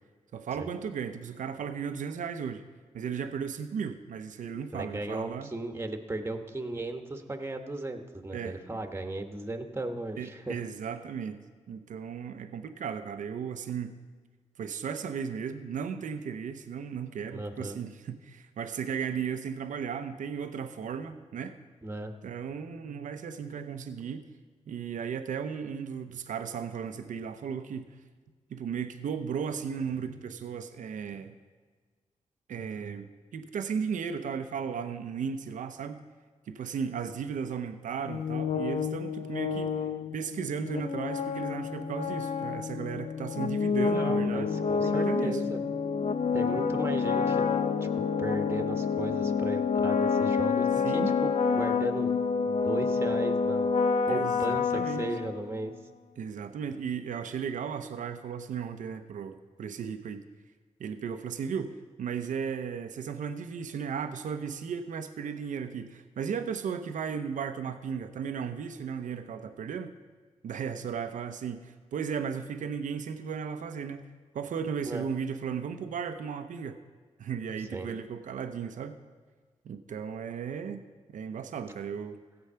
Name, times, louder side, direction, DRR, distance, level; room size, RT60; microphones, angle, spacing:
voice 1, 0.3-2.6 2.9-5.5 8.3-8.6 10.2-11.4 11.7-14.0 14.6-21.6 22.2-24.2 24.7-27.9 28.5-31.3 32.5-36.0 36.5-39.7 40.1-44.5 44.8-45.4 50.8-51.1 54.1-55.1 56.2-60.2 60.8-69.9 70.4-74.0 74.3-76.8 77.2-79.0 79.6-80.8 81.1-82.2, right 7 dB, 80° right, 9 dB, 0.8 m, -35 dB
voice 2, 4.7-10.6 17.3-17.8 21.8-22.1 43.9-45.6 46.3-47.5 48.0-50.7 50.9-52.1 52.4-53.7 54.1-55.7 74.8-75.1 77.7-77.9, right 2 dB, 20° right, 6 dB, 1.4 m, -36 dB
sound 1, 38.1-55.7, left 5 dB, 60° left, 0.7 m, -28 dB
15.5 x 7.9 x 5.7 m, 1.5 s
cardioid pair, 65°, 13 cm